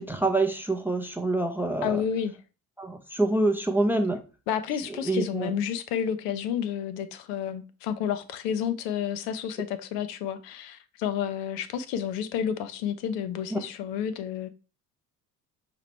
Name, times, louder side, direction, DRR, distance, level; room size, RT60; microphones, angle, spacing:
voice 1, 0.0-2.0 2.8-4.2 5.1-5.6 13.5-13.6, right 2 dB, 5° right, 0.5 m, -26 dB
voice 2, 1.8-2.4 4.5-14.5, left 8 dB, 55° left, 0.6 m, -30 dB
5.7 x 3.0 x 3.1 m
figure-of-eight pair, 60°, 48 cm